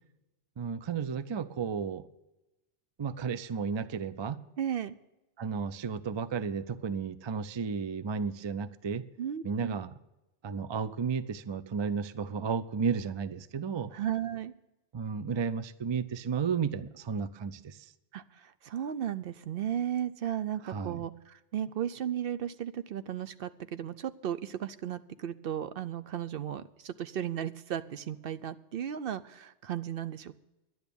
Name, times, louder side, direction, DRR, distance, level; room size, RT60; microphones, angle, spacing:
voice 1, 0.6-2.1 3.0-4.4 5.4-9.0 9.4-10.0 10.4-13.9 14.9-17.9 20.6-21.0, right 6 dB, 45° right, 15 dB, 0.3 m, -33 dB
voice 2, 4.6-5.0 9.2-9.8 13.9-14.5 18.1-18.2 18.6-30.3, right 10 dB, 60° right, 13 dB, 0.7 m, -35 dB
11.0 x 10.5 x 6.9 m, 0.96 s
omnidirectional pair, 1.2 m